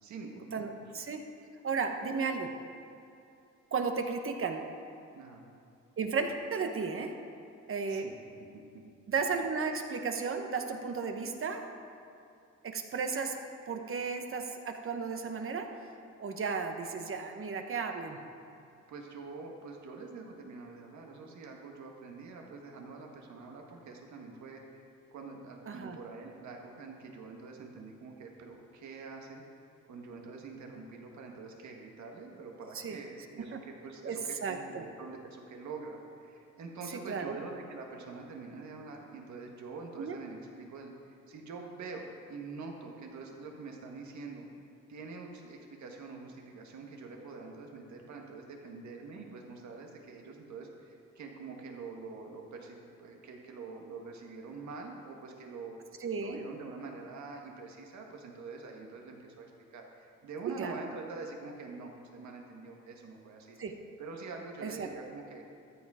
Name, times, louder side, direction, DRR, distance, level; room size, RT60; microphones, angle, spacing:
voice 1, 0.0-0.6 5.1-5.4 7.9-8.1 8.5-8.8 18.9-29.4 29.9-44.5 44.9-55.8 56.2-63.6 64.0-65.4, right 4 dB, 70° right, 1 dB, 1.8 m, -45 dB
voice 2, 0.5-1.2 1.6-2.5 3.7-4.6 6.0-7.1 7.7-8.1 9.1-11.7 12.6-13.4 13.7-15.7 16.2-18.2 25.7-26.0 32.7-33.0 33.5-33.6 34.0-34.8 36.9-37.4 40.0-40.2 56.0-56.4 60.6-60.7 63.6-63.7 64.6-64.9, right 5 dB, 45° right, 5 dB, 1.2 m, -34 dB
13.5 x 7.7 x 5.0 m, 2.6 s
cardioid pair, 90°, 30 cm